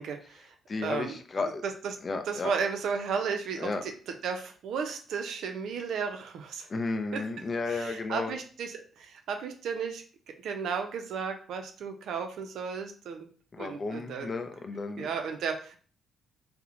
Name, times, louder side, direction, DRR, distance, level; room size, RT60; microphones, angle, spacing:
voice 1, 0.0-0.5 0.8-2.0 2.3-3.9 4.2-6.7 7.1-7.2 7.7-10.0 10.4-13.3 13.6-14.3 15.0-15.8, right 6 dB, 75° right, 5 dB, 0.4 m, -34 dB
voice 2, 0.7-1.6 2.0-2.5 3.6-3.8 6.7-8.3 13.5-15.1, left 3 dB, 35° left, 6 dB, 0.4 m, -33 dB
2.8 x 2.1 x 2.4 m, 0.42 s
cardioid pair, 90°, 0 cm